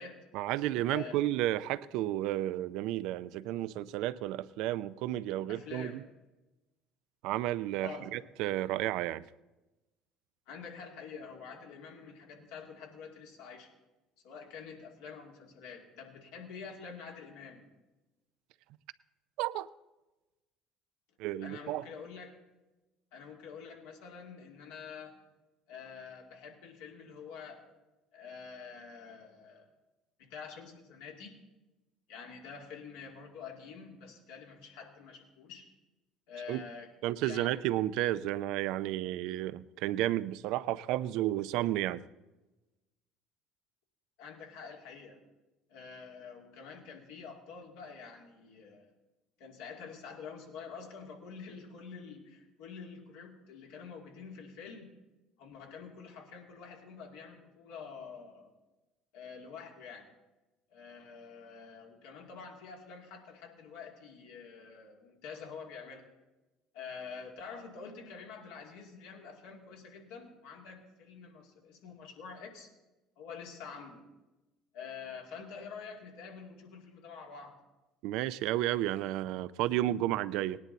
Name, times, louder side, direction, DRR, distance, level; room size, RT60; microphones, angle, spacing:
voice 1, 0.3-6.0 7.2-9.2 19.4-19.7 21.2-21.8 36.5-36.6 37.0-42.0 78.0-80.6, right 14 dB, 70° right, 0.5 m, -32 dB
voice 2, 5.5-6.0 7.8-8.1 10.5-13.7 14.2-17.6 21.4-22.3 23.1-25.2 25.7-27.6 28.1-29.7 30.2-31.4 32.1-35.7 36.3-36.9 37.2-37.6 44.2-45.2 45.7-48.9 49.4-54.9 55.4-58.5 59.1-60.1 60.7-66.0 66.7-72.7 73.2-74.0 74.7-77.6, left 5 dB, 80° left, 2.5 m, -47 dB
18.5 x 10.5 x 4.0 m
supercardioid pair, 85°, 0 cm